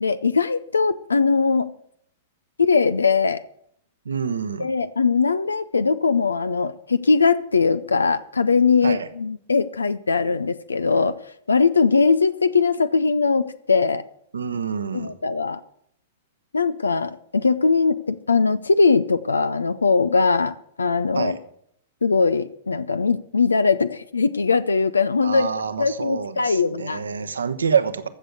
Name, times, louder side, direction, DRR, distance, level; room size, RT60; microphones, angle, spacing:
voice 1, 0.0-1.7 2.6-3.4 4.6-11.2 11.5-14.0 14.9-15.6 16.5-21.3 22.0-25.5 25.8-27.0, left 4 dB, 90° left, 15 dB, 0.5 m, -20 dB
voice 2, 4.0-4.7 8.8-9.1 14.3-15.1 21.1-21.4 25.2-28.1, right 6 dB, 85° right, 12 dB, 1.1 m, -26 dB
15.0 x 6.6 x 8.0 m, 0.69 s
hypercardioid pair, 110°, 0 cm